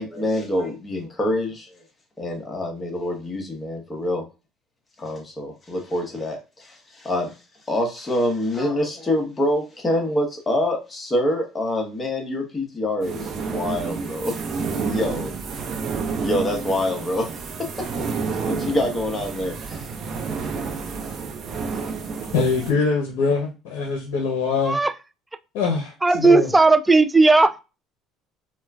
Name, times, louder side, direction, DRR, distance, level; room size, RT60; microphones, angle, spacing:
voice 1, 0.0-1.7 2.2-4.3 5.0-7.3 7.7-14.3 14.7-15.3 16.2-17.3 17.6-17.7 18.4-19.9, left 1 dB, 20° left, 2 dB, 1.1 m, -26 dB
sound 1, 13.0-22.7, right 5 dB, 45° right, 0.7 m, -30 dB
voice 2, 22.3-24.8 25.5-26.5, left 4 dB, 75° left, 1 dB, 0.8 m, -23 dB
voice 3, 26.0-27.6, right 3 dB, 10° right, 11 dB, 0.3 m, -16 dB
4.3 x 2.2 x 2.3 m, 0.29 s
supercardioid pair, 85°, 0 cm